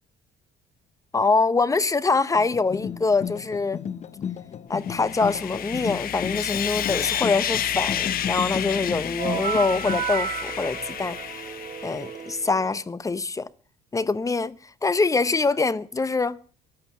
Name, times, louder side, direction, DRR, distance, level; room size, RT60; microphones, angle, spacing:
voice 1, 1.1-3.8 4.7-11.2 11.8-13.5 13.9-16.4, left 4 dB, 20° left, 0.8 m, -24 dB
sound 1, 2.3-10.0, left 7 dB, 40° left, 1.1 m, -34 dB
Sawing, 4.8-12.3, left 10 dB, 60° left, 1.3 m, -30 dB
sound 2, 9.2-12.8, right 8 dB, 50° right, 1.8 m, -32 dB
14.5 x 11.5 x 7.4 m
cardioid pair, 110°, 17 cm